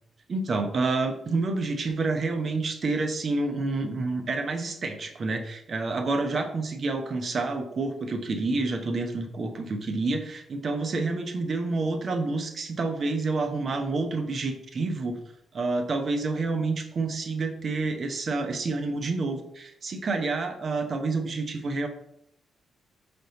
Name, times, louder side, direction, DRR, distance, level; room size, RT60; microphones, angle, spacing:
voice 1, 0.3-15.2 15.5-21.9, right 3 dB, 55° right, 6 dB, 0.8 m, -28 dB
5.2 x 3.5 x 2.9 m, 0.75 s
hypercardioid pair, 45°, 0 cm